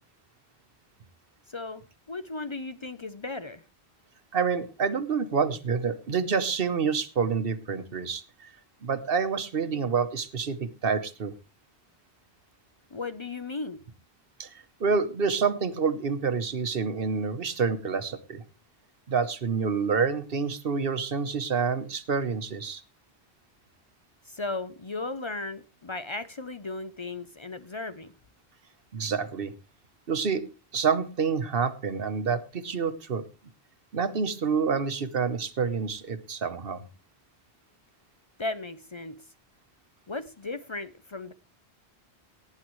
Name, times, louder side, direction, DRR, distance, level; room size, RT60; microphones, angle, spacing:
voice 1, 1.5-1.8 2.1-3.6 12.9-13.8 24.3-28.1 38.4-39.2 40.1-41.3, left 3 dB, 35° left, 0.5 m, -36 dB
voice 2, 4.3-8.5 8.8-11.3 14.4-14.5 14.8-18.4 19.1-22.8 28.9-29.5 30.1-33.2 33.9-36.8, right 5 dB, 60° right, 1.1 m, -28 dB
18.0 x 9.7 x 3.1 m
omnidirectional pair, 1.1 m